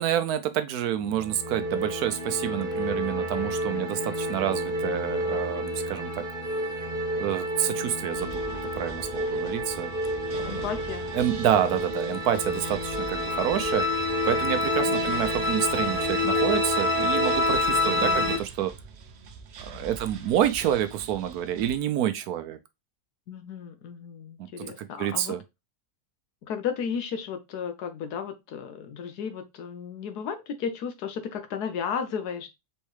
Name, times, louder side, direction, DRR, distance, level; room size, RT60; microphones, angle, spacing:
voice 1, 0.0-6.3 7.2-8.4 8.7-9.9 10.4-10.6 11.1-13.8 14.3-18.7 19.6-22.6 24.4-25.4, right 10 dB, 80° right, 1.1 m, -28 dB
sound 1, 1.0-18.4, left 1 dB, 40° right, 1.0 m, -28 dB
sound 2, 8.1-21.8, right 4 dB, 60° right, 0.7 m, -44 dB
voice 2, 10.4-11.1 14.9-15.1 17.9-18.2 23.3-25.4 26.4-32.5, left 7 dB, 85° left, 1.3 m, -34 dB
4.5 x 3.1 x 3.1 m
omnidirectional pair, 1.6 m